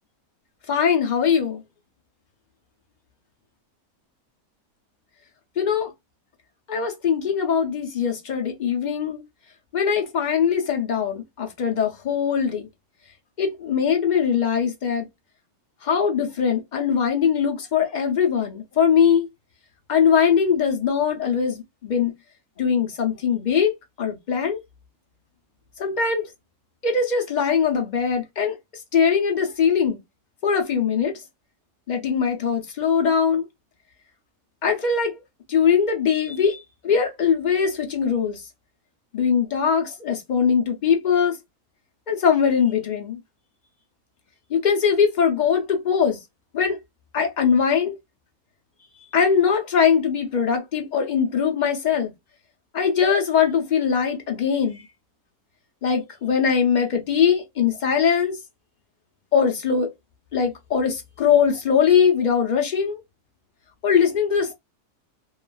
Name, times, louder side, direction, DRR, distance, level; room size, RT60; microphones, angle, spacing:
voice 1, 0.7-1.6 5.6-5.9 6.7-9.2 9.7-12.7 13.4-15.1 15.8-19.3 19.9-22.1 22.6-23.7 24.0-24.6 25.8-26.3 26.8-28.6 28.9-30.0 30.4-31.2 31.9-33.4 34.6-35.2 35.5-38.4 39.1-41.4 42.1-43.2 44.5-46.2 46.5-46.8 47.1-47.9 49.1-52.1 52.7-54.8 55.8-58.4 59.3-59.9 60.3-63.0 63.8-64.5, left 7 dB, 60° left, 0.4 m, -21 dB
2.9 x 2.4 x 2.3 m
omnidirectional pair, 1.6 m